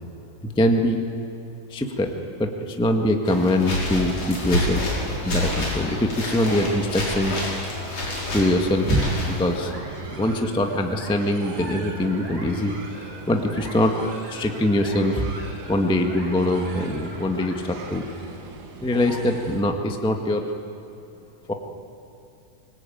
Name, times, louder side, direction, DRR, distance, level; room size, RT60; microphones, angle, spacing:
voice 1, 0.4-1.0 1.7-2.1 2.4-4.8 5.2-7.3 8.3-9.7 10.1-12.7 13.3-13.9 14.3-15.2 15.7-18.0 18.8-20.5 21.5-21.6, left 1 dB, 5° left, 4 dB, 0.3 m, -23 dB
sound 1, 3.3-9.7, left 1 dB, 50° left, 6.5 m, -28 dB
sound 2, 3.3-18.5, right 1 dB, 55° right, 5.7 m, -43 dB
sound 3, 9.4-19.6, right 4 dB, 85° right, 3.6 m, -40 dB
24.5 x 20.0 x 9.3 m, 2.7 s
omnidirectional pair, 3.7 m